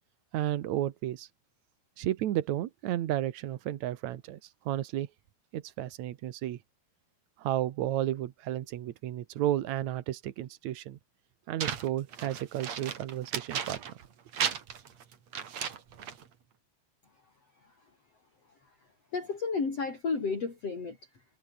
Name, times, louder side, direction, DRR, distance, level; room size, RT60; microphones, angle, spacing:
voice 1, 0.3-1.3 2.0-5.1 5.5-6.6 7.4-11.0 11.5-13.8, right 13 dB, 75° right, 1.7 m, -32 dB
sound 1, 11.6-14.1 14.3-16.2, right 8 dB, 45° right, 3.0 m, -35 dB
voice 2, 17.1-17.9 18.4-21.2, left 4 dB, 35° left, 5.8 m, -34 dB
omnidirectional pair, 4.8 m